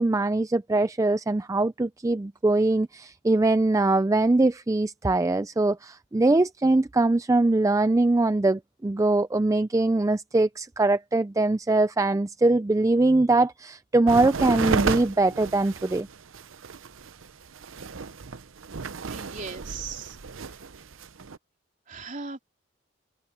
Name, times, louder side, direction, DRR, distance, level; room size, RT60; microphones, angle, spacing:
voice 1, 0.0-16.1, right 2 dB, 15° right, 0.4 m, -22 dB
sound 1, 14.1-21.4, right 4 dB, 75° right, 0.7 m, -32 dB
voice 2, 19.1-20.7 21.9-22.4, right 4 dB, 40° right, 3.5 m, -39 dB
head